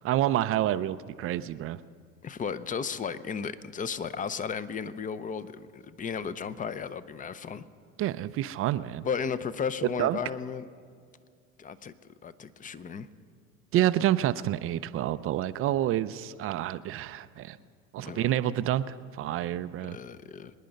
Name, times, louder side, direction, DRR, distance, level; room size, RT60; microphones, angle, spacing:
voice 1, 0.0-1.8 8.0-9.1 10.0-10.2 13.7-17.6 17.9-20.0, right 13 dB, 30° right, 14 dB, 0.5 m, -28 dB
voice 2, 2.2-7.6 9.0-10.7 11.6-11.9 12.2-13.1 17.6-17.7 18.0-18.3 19.9-20.5, left 6 dB, 20° left, 15 dB, 0.6 m, -34 dB
25.5 x 10.0 x 5.3 m, 2.1 s
hypercardioid pair, 95°, 43 cm